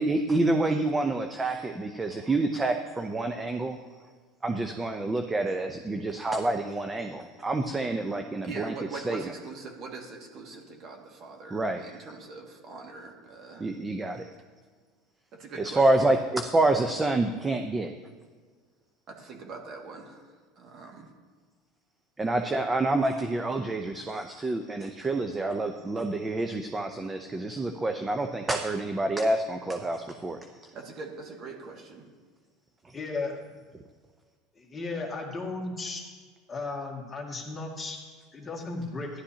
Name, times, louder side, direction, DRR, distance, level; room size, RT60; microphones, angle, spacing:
voice 1, 0.0-3.8 4.4-9.2 11.5-11.8 13.6-14.3 15.6-17.9 22.2-30.4, right 2 dB, 15° right, 6 dB, 0.7 m, -28 dB
voice 2, 8.4-13.7 15.3-16.2 19.1-20.3 20.6-21.1 30.7-32.1, right 4 dB, 45° right, 1 dB, 2.1 m, -42 dB
voice 3, 32.9-33.3 34.6-36.1 36.5-38.0 38.3-39.1, left 3 dB, 20° left, -1 dB, 2.1 m, -35 dB
14.0 x 11.5 x 2.9 m, 1.5 s
supercardioid pair, 110°, 0 cm